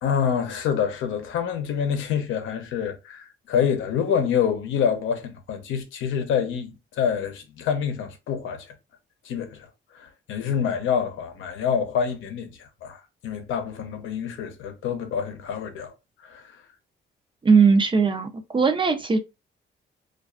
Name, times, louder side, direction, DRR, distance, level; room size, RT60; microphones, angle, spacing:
voice 1, 0.0-8.7 9.2-9.7 9.9-15.9 16.2-16.5, left 7 dB, 80° left, 0.7 m, -27 dB
voice 2, 17.4-19.2, right 5 dB, 25° right, 0.4 m, -19 dB
2.3 x 2.3 x 2.3 m
cardioid pair, 90°, 20 cm